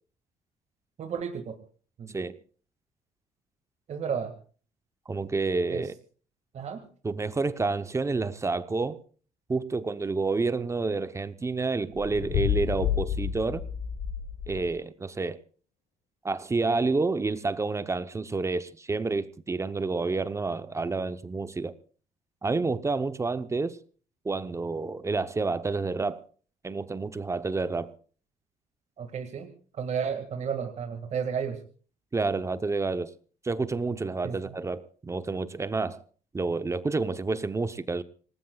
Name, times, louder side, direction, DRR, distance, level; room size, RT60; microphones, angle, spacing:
voice 1, 1.0-1.6 2.0-2.2 3.9-4.3 5.7-5.8 6.5-6.8 29.0-29.5 29.7-31.6 34.2-34.6, right 7 dB, 45° right, 2.0 m, -32 dB
voice 2, 5.1-5.9 7.0-9.0 9.5-13.6 14.5-15.4 16.2-21.7 22.4-23.8 24.2-26.2 26.6-27.9 32.1-33.1 33.4-36.0 36.3-38.0, right 3 dB, 20° right, 0.7 m, -29 dB
sound 1, 11.9-14.8, left 9 dB, 80° left, 1.7 m, -30 dB
26.5 x 19.0 x 2.3 m
cardioid pair, 130°, 16 cm